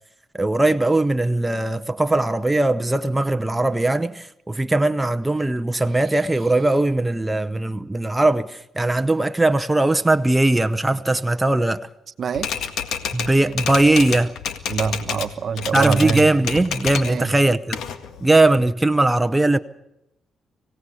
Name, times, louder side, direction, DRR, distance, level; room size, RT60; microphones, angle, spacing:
voice 1, 0.3-11.9 13.1-14.4 15.7-17.8 18.2-19.6, right 2 dB, 10° right, 0.8 m, -19 dB
voice 2, 12.2-12.5 14.7-16.3 17.1-17.3, right 6 dB, 50° right, 1.1 m, -24 dB
Typewriter, 12.3-15.3 15.6-17.2 17.5-18.5, left 7 dB, 75° left, 1.9 m, -29 dB
25.5 x 17.5 x 8.2 m
cardioid pair, 90°, 0 cm